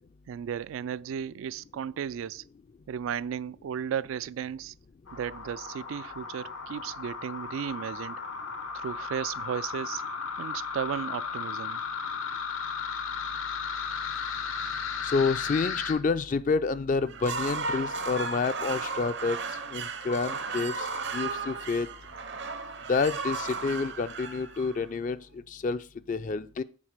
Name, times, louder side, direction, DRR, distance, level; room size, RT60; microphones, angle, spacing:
voice 1, 0.3-2.4 2.9-4.7 5.1-8.3 8.7-10.0 10.4-11.8, right 8 dB, 80° right, 0.3 m, -35 dB
sound 1, 5.1-15.9, left 5 dB, 90° left, 1.2 m, -35 dB
voice 2, 15.0-21.9 22.9-26.6, left 4 dB, 40° left, 0.3 m, -29 dB
sound 2, 17.1-25.2, right 4 dB, 60° right, 0.7 m, -35 dB
7.4 x 4.1 x 6.5 m
head